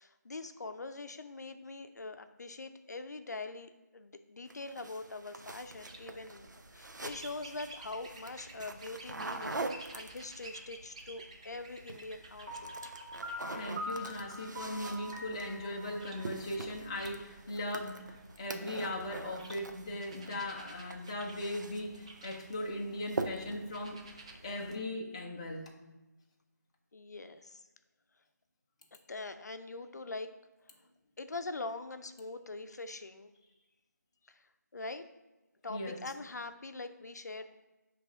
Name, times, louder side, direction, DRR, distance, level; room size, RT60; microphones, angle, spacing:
voice 1, 0.0-6.5 6.7-13.0 26.9-27.7 29.1-30.3 31.2-33.3 34.3-34.5 34.7-35.0 35.6-37.4, left 3 dB, 65° left, 10 dB, 0.6 m, -43 dB
sound 1, 4.5-10.5 11.7-12.1 12.4-20.3 20.6-22.1 22.4-22.7 23.1-23.7, right 2 dB, 80° right, 0.7 m, -43 dB
sound 2, 5.4-24.7, right 2 dB, 20° right, 0.5 m, -53 dB
Piano, 12.5-17.3, left 1 dB, 35° right, 1.2 m, -44 dB
voice 2, 13.5-24.0 24.4-25.7 35.7-36.0, left 1 dB, 20° left, -1 dB, 0.6 m, -38 dB
9.8 x 3.3 x 3.7 m, 1.1 s
figure-of-eight pair, 170°, 10 cm